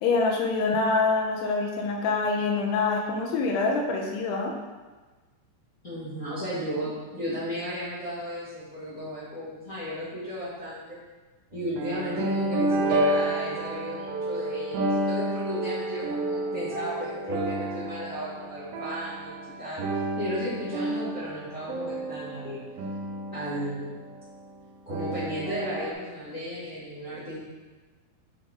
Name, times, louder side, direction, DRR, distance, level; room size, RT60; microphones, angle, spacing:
voice 1, 0.0-4.5, left 3 dB, 85° left, 1 dB, 2.7 m, -25 dB
voice 2, 5.8-11.0 11.5-19.8 20.2-22.6 23.3-23.9 24.8-27.4, equal, 65° left, -13 dB, 0.7 m, -34 dB
sound 1, 11.5-24.4 24.9-25.9, right 2 dB, 80° right, 2.1 m, -30 dB
7.9 x 3.7 x 3.5 m, 1.3 s
omnidirectional pair, 4.7 m